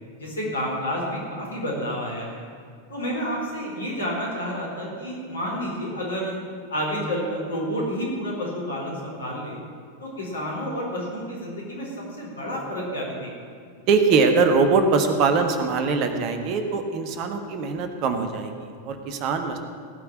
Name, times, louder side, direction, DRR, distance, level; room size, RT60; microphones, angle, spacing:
voice 1, 0.2-2.4 2.9-6.4 6.7-9.6 10.0-11.9 12.2-13.3, equal, 75° left, -3 dB, 4.5 m, -30 dB
voice 2, 13.9-19.6, right 4 dB, 40° right, 6 dB, 1.4 m, -22 dB
18.0 x 5.9 x 9.3 m, 2.3 s
figure-of-eight pair, 90°, 0 cm